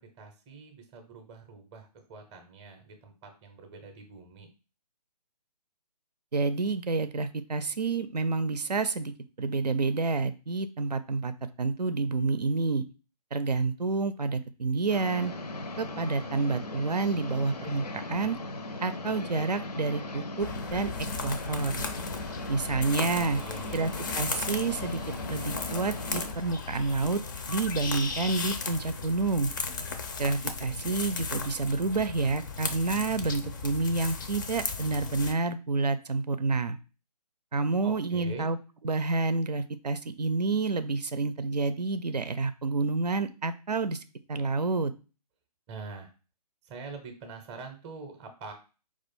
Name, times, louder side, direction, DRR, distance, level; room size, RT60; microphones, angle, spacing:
voice 1, 0.0-4.5 23.3-23.9 37.8-38.5 45.7-46.1 46.6-48.5, right 4 dB, 15° right, 5 dB, 0.6 m, -44 dB
voice 2, 6.3-9.1 9.4-11.3 11.6-12.8 13.3-15.3 15.8-18.4 18.8-20.9 21.2-21.8 22.5-23.4 23.7-25.0 25.3-27.2 27.5-29.5 30.2-36.8 37.5-38.6 38.8-44.0 44.3-44.9, right 3 dB, 75° right, 11 dB, 0.5 m, -29 dB
sound 1, 14.9-26.3, left 2 dB, 75° left, 0.6 m, -38 dB
sound 2, 20.4-35.3, left 4 dB, 30° left, 0.4 m, -36 dB
4.5 x 2.4 x 4.3 m, 0.33 s
figure-of-eight pair, 140°, 21 cm